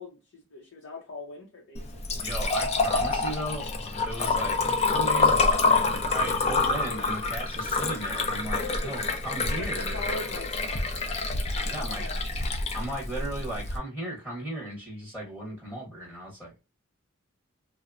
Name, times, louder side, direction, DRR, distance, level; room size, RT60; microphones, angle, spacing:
voice 1, 0.0-2.3 8.5-9.1 9.5-11.2 11.5-12.2, left 2 dB, 70° left, 0.7 m, -42 dB
Liquid, 1.8-13.8, left 3 dB, 30° left, 0.4 m, -27 dB
voice 2, 2.2-4.6 4.8-10.0 11.7-12.0 12.7-16.6, right 1 dB, 5° left, 0.9 m, -36 dB
2.9 x 2.1 x 2.4 m
head